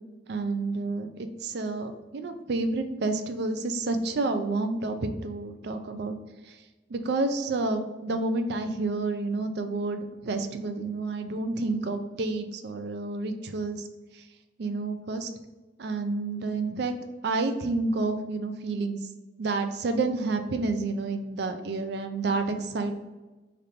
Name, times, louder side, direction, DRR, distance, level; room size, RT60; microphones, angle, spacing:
voice 1, 0.3-6.2 6.5-6.6 6.9-13.8 14.6-15.3 15.8-16.9 17.2-19.0 19.4-23.0, right 3 dB, 60° right, 7 dB, 0.4 m, -29 dB
3.2 x 2.6 x 4.2 m, 1.2 s
head